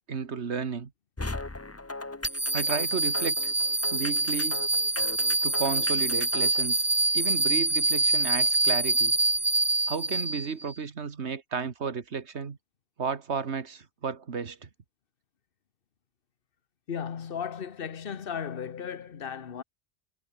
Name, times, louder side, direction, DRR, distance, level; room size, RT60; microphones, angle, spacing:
voice 1, 0.1-0.9 2.5-3.5 3.9-4.6 5.4-6.9 7.1-9.1 9.9-12.6 13.0-14.7, right 5 dB, 80° right, 1.8 m, -33 dB
sound 1, 1.2-6.6, left 2 dB, 15° left, 0.7 m, -38 dB
sound 2, 2.2-10.7, right 2 dB, 15° right, 0.3 m, -26 dB
voice 2, 16.9-19.6, left 7 dB, 55° left, 1.2 m, -35 dB
omnidirectional pair, 1.1 m